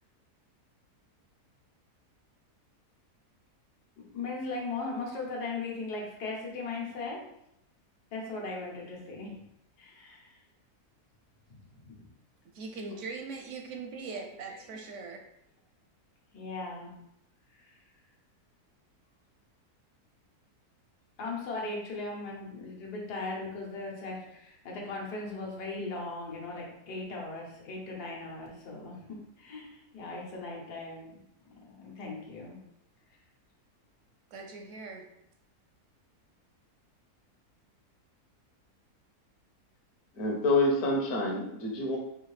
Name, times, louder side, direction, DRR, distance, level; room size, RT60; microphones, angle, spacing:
voice 1, 4.0-7.3 8.1-9.4 9.8-10.4 11.5-12.1 14.2-14.8 16.3-16.9 17.5-17.8 21.2-31.1 31.5-32.6, left 3 dB, 80° left, -2 dB, 1.6 m, -38 dB
voice 2, 12.5-15.2 34.3-35.1, right 4 dB, 70° right, 3 dB, 0.7 m, -41 dB
voice 3, 40.2-42.0, left 2 dB, 60° left, 0 dB, 1.2 m, -27 dB
4.8 x 2.7 x 3.2 m, 0.80 s
omnidirectional pair, 1.7 m